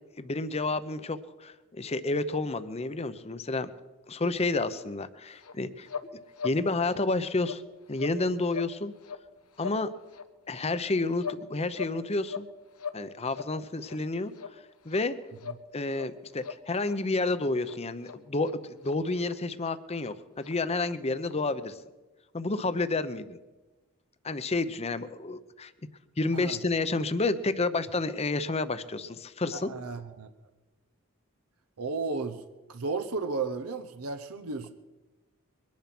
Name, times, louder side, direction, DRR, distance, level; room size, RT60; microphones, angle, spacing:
voice 1, 0.2-3.7 4.1-5.9 6.4-7.6 7.9-8.9 9.6-9.9 10.5-12.5 12.9-15.2 15.7-21.8 22.3-23.4 24.2-25.7 26.2-29.7, left 3 dB, 30° left, 12 dB, 0.7 m, -30 dB
sound 1, 5.4-5.6 5.9-6.1 6.3-6.6 6.9-7.0 7.4-7.6 7.9-8.2 8.5-8.7 9.0-9.3 9.5-9.8 10.1-10.3 10.6-11.4 11.7-12.5 12.7-13.0 13.3-13.5 13.8-14.0 14.3-14.5 14.9-15.0 15.4-15.6 15.9-16.1 16.4-17.0 17.2-17.3 17.6-17.8 18.0-18.2 18.4-18.6 18.8-18.9 19.2-19.3 19.6-19.7 20.0-20.1 20.4-20.5 20.8-20.9 21.2-21.3, left 6 dB, 85° left, 1.1 m, -40 dB
voice 2, 29.5-30.3 31.8-32.4 32.7-34.7, right 4 dB, 85° right, 7 dB, 0.9 m, -33 dB
22.5 x 10.5 x 6.0 m, 1.2 s
head